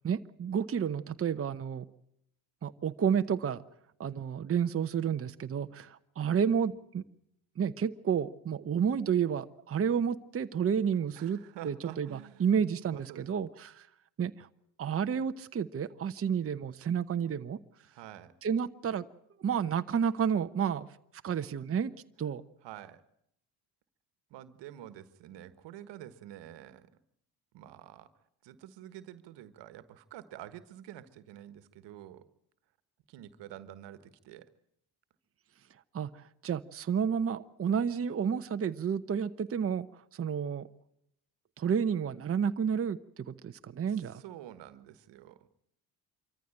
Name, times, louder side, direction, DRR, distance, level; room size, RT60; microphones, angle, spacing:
voice 1, 0.0-1.8 2.6-3.6 4.0-7.0 7.6-11.4 11.6-13.9 14.2-14.5 14.8-17.6 18.4-19.1 19.4-20.9 21.2-21.9 22.2-22.4 35.9-39.9 40.1-40.7 41.6-44.2, right 7 dB, 30° right, 10 dB, 0.9 m, -30 dB
voice 2, 11.1-13.3 17.9-18.3 22.6-23.0 24.3-26.9 27.5-28.1 28.4-32.2 33.1-34.5 43.9-45.5, right 12 dB, 75° right, 13 dB, 1.4 m, -48 dB
25.0 x 14.5 x 8.9 m, 0.76 s
supercardioid pair, 75°, 42 cm